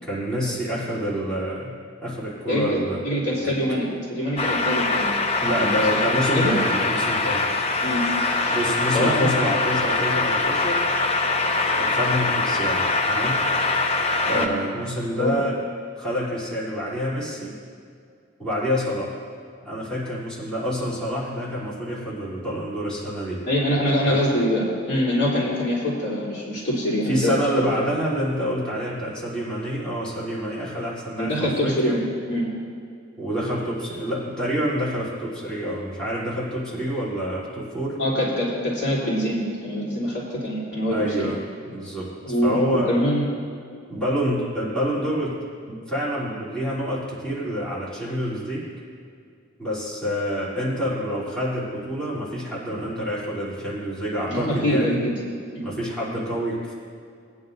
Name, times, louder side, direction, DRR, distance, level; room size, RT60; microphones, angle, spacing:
voice 1, 0.0-1.7 2.0-3.0 3.4-3.5 5.4-7.5 8.5-10.8 11.7-13.4 14.2-15.5 16.0-17.6 18.4-19.1 19.6-23.4 24.0-24.2 27.1-31.9 33.2-38.0 40.9-41.4 41.7-42.1 42.4-42.9 43.9-45.4 45.7-48.7 49.6-55.0 55.6-56.8, equal, 5° left, -10 dB, 3.2 m, -27 dB
voice 2, 2.5-5.1 5.5-6.0 6.3-6.5 7.8-8.0 8.4-8.6 8.9-9.3 14.3-14.5 15.2-15.4 23.5-27.3 31.2-32.5 38.0-41.3 42.2-43.3 54.3-55.2 55.5-55.6, equal, 60° left, -7 dB, 3.2 m, -24 dB
sound 1, 4.4-14.5, left 3 dB, 30° left, 0.7 m, -23 dB
20.0 x 9.5 x 2.7 m, 2.4 s
head